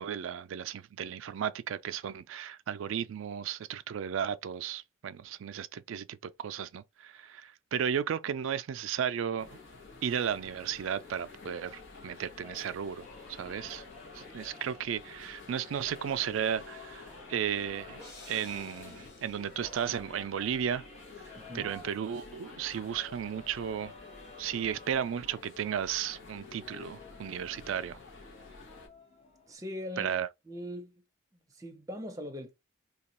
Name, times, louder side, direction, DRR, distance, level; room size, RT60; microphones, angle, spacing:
voice 1, 0.0-9.6 10.0-13.8 14.1-20.8 21.2-23.9 24.4-28.0 30.0-30.3, right 8 dB, 80° right, 0.3 m, -34 dB
sound 1, 9.4-28.9, left 4 dB, 70° left, 0.9 m, -50 dB
sound 2, 12.4-29.5, left 2 dB, 35° left, 0.9 m, -54 dB
sound 3, 18.0-20.1, left 2 dB, 15° left, 1.6 m, -54 dB
voice 2, 21.3-21.7 29.5-30.2 30.5-31.0 31.5-32.5, left 1 dB, 15° right, 0.7 m, -41 dB
2.9 x 2.3 x 4.1 m
head